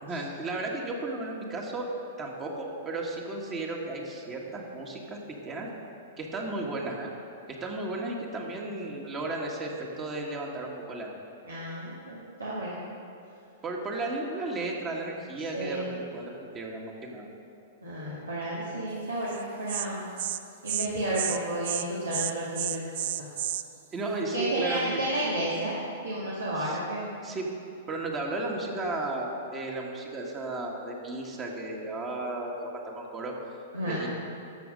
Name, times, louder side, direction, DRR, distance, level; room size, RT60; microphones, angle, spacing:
voice 1, 0.0-1.9 2.2-5.2 5.4-5.7 6.2-7.1 7.6-11.1 13.6-17.3 23.9-24.9 26.6-26.8 27.2-27.5 27.9-33.3 33.9-34.1, right 2 dB, 25° right, -1 dB, 1.7 m, -34 dB
voice 2, 11.5-12.9 15.5-15.9 17.8-20.1 20.6-22.9 23.2-23.3 24.3-25.8 26.0-27.1 33.7-34.1, right 1 dB, 85° right, -7 dB, 2.1 m, -32 dB
Insect, 19.3-19.4 19.7-19.9 20.2-20.4 20.7-20.9 21.1-21.4 21.6-21.8 22.1-23.6, right 12 dB, 55° right, 0.5 m, -31 dB
13.0 x 7.1 x 5.3 m, 2.5 s
figure-of-eight pair, 105°, 0 cm